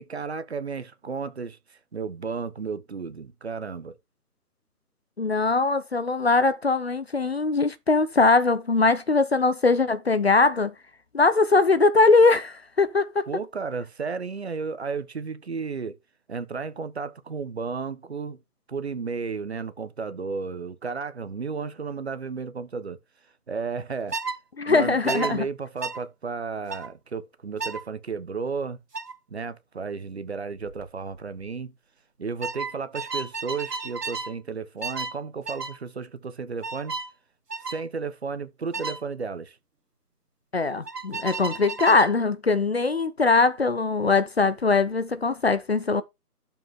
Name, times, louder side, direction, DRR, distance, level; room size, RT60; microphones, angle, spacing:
voice 1, 0.0-4.0 13.3-16.0 16.3-18.4 18.7-23.0 23.5-24.2 24.7-28.8 29.3-31.7 32.2-37.0 37.6-39.6, right 5 dB, 40° right, 1.2 m, -33 dB
voice 2, 5.2-10.7 11.1-13.3 24.6-25.4 40.5-46.0, left 3 dB, 40° left, 0.8 m, -21 dB
sound 1, 24.1-24.4 25.1-25.3 25.8-26.0 26.7-26.9 27.6-27.8 28.9-29.1 30.6-30.8 31.1-31.5 32.4-34.3 34.8-35.2 35.5-35.8 36.6-37.1 37.5-37.8 38.7-39.0 40.9-42.1, right 4 dB, 85° right, 1.8 m, -33 dB
12.0 x 5.6 x 3.7 m
figure-of-eight pair, 165°, 47 cm